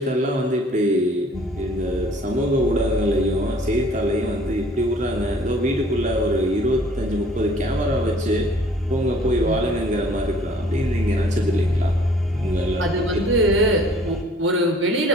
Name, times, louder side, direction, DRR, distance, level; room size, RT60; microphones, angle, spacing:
voice 1, 0.0-8.5 8.9-11.9 12.3-12.9, equal, 40° right, 0 dB, 2.9 m, -24 dB
sound 1, 1.3-14.2, left 1 dB, ahead, 2.5 m, -27 dB
voice 2, 12.8-15.1, right 1 dB, 75° right, 3 dB, 5.6 m, -21 dB
22.5 x 20.5 x 8.2 m, 1.2 s
head